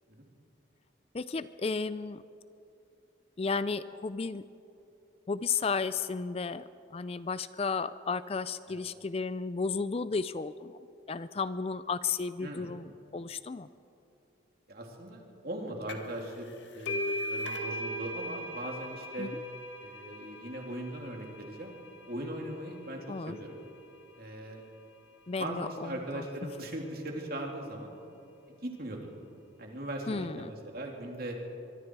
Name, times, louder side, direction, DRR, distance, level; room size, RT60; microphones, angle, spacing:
voice 1, 1.1-2.2 3.4-4.4 5.3-6.6 6.9-10.8 11.1-13.7 19.2-19.4 23.1-23.4 25.3-26.3 30.1-30.5, left 4 dB, 30° left, 14 dB, 0.4 m, -33 dB
voice 2, 12.4-12.7 14.7-16.5 16.7-19.3 19.8-21.7 22.1-23.6 24.2-24.6 25.4-27.9 28.5-29.1 29.6-31.4, right 1 dB, 50° right, 1 dB, 3.0 m, -39 dB
sound 1, 15.9-16.2 16.5-23.8, left 1 dB, 65° left, 1.8 m, -39 dB
24.0 x 23.5 x 4.7 m, 2.7 s
head